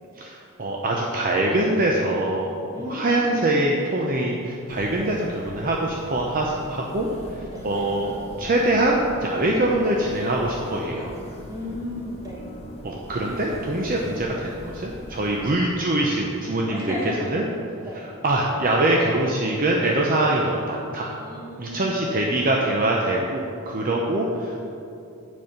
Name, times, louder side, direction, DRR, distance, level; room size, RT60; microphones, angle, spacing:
voice 1, 0.2-2.5 2.9-5.1 5.5-8.1 8.4-11.1 12.8-17.0 17.3-17.4 18.2-21.1 21.6-24.6, right 1 dB, 40° right, -1 dB, 0.7 m, -23 dB
voice 2, 2.7-3.4 5.0-5.2 7.5-7.7 11.5-12.5 16.7-17.2 17.8-18.0 21.2-22.2, equal, 15° right, -3 dB, 1.5 m, -35 dB
sound 1, 4.7-15.5, equal, 30° left, 1.3 m, -41 dB
7.8 x 5.5 x 6.8 m, 2.7 s
head